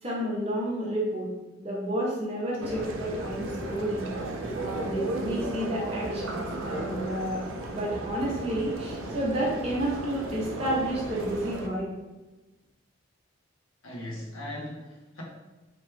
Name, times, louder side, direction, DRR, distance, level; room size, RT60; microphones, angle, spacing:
voice 1, 0.0-1.3 1.6-4.1 4.5-11.9, equal, 30° right, -6 dB, 0.7 m, -31 dB
sound 1, 2.6-11.7, right 2 dB, 80° right, 0.4 m, -34 dB
voice 2, 13.8-15.2, left 1 dB, 85° left, -4 dB, 0.8 m, -38 dB
2.9 x 2.1 x 3.2 m, 1.1 s
head